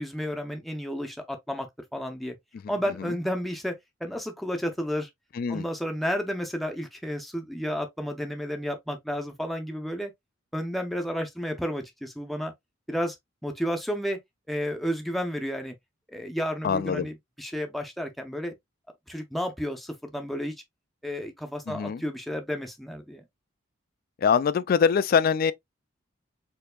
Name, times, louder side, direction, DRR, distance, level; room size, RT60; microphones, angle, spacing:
voice 1, 0.0-2.3 2.7-5.1 5.5-10.1 10.5-12.5 12.9-13.2 13.4-14.2 14.5-15.7 16.1-18.5 19.1-20.5 21.0-23.2, equal, ahead, 0.5 m, -32 dB
voice 2, 16.6-17.1 21.7-22.0 24.2-25.5, left 6 dB, 45° left, 0.3 m, -23 dB
4.4 x 2.8 x 2.2 m
head